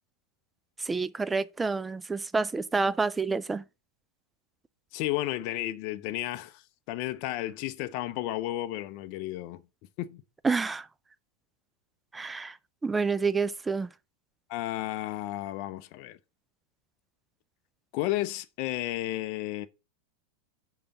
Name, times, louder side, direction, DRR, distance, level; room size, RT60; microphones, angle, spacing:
voice 1, 0.8-3.6 10.4-10.9 12.1-12.6 12.8-13.9, right 4 dB, 10° right, 0.5 m, -28 dB
voice 2, 4.9-6.6 6.9-9.6 10.0-10.2 14.5-16.2 17.9-19.7, left 15 dB, 45° left, 0.6 m, -32 dB
5.6 x 5.2 x 6.5 m
figure-of-eight pair, 90°, 0 cm